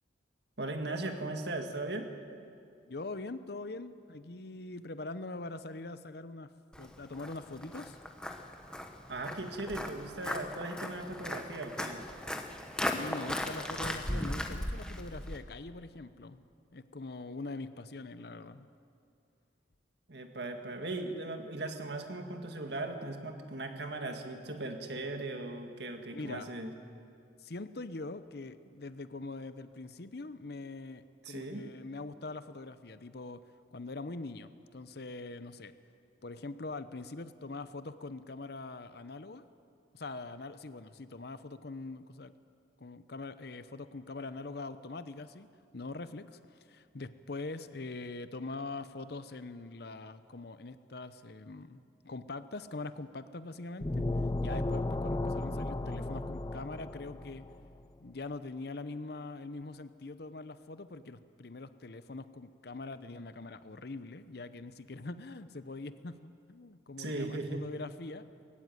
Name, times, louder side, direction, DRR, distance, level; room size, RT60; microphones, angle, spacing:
voice 1, 0.6-2.1 9.1-12.0 20.1-26.7 31.2-31.6 67.0-67.6, right 2 dB, 60° right, 5 dB, 2.0 m, -38 dB
voice 2, 2.9-6.5 6.8-8.0 12.8-16.4 16.7-18.7 26.1-26.5 27.4-33.4 33.7-35.7 36.2-39.4 39.9-42.3 42.8-45.5 45.7-54.1 54.4-57.4 58.0-68.3, left 3 dB, 55° left, 12 dB, 0.8 m, -43 dB
Walk footsteps, 6.7-15.4, left 1 dB, 5° left, 1.1 m, -38 dB
sound 1, 53.8-57.5, left 2 dB, 20° left, 0.4 m, -34 dB
20.5 x 16.0 x 9.5 m, 2.4 s
head